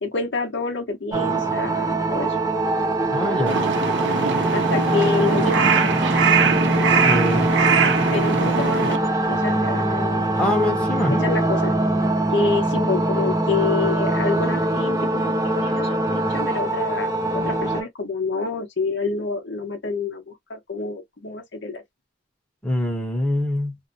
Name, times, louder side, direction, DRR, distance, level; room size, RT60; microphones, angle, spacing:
voice 1, 0.0-2.4 4.5-5.9 8.1-10.3 11.1-11.7 12.3-21.8, left 4 dB, 70° left, 0.9 m, -27 dB
sound 1, 1.1-17.8, right 2 dB, 20° right, 0.5 m, -22 dB
voice 2, 3.1-3.6 7.0-7.5 10.4-11.2 22.6-23.8, left 1 dB, 5° left, 0.8 m, -24 dB
Crow, 3.5-9.0, right 5 dB, 70° right, 0.7 m, -22 dB
2.7 x 2.1 x 2.6 m
head